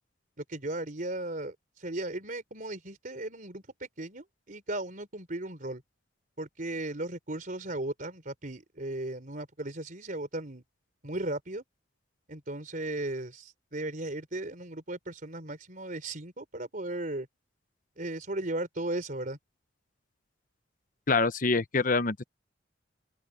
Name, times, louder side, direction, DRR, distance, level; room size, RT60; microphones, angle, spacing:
voice 1, 0.5-5.8 6.4-10.6 11.0-11.6 12.3-17.3 18.0-19.4, right 1 dB, 45° right, 3.9 m, -36 dB
voice 2, 21.1-22.2, left 4 dB, 45° left, 0.9 m, -25 dB
open air
head